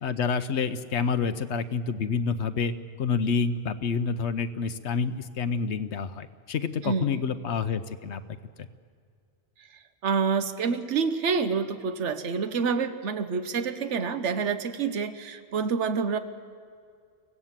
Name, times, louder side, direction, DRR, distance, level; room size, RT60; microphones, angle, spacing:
voice 1, 0.0-2.7 3.0-8.2 8.6-8.7, left 5 dB, 70° left, 11 dB, 1.1 m, -28 dB
voice 2, 6.8-7.2 10.0-16.2, right 5 dB, 80° right, 9 dB, 1.2 m, -27 dB
24.0 x 16.5 x 7.4 m, 2.3 s
omnidirectional pair, 1.2 m